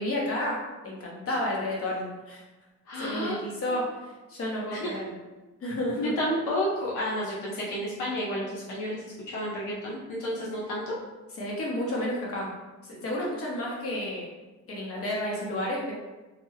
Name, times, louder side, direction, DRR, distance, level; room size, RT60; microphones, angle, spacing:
voice 1, 0.0-2.4 3.0-3.9 4.3-5.1 5.6-6.1 11.4-12.5 12.8-14.3 14.7-15.9, left 1 dB, 50° left, -3 dB, 1.1 m, -31 dB
voice 2, 2.9-3.4 3.6-3.7 4.7-4.9 6.0-10.9, equal, 80° left, -5 dB, 0.7 m, -31 dB
3.4 x 2.2 x 3.2 m, 1.2 s
cardioid pair, 90°, 30 cm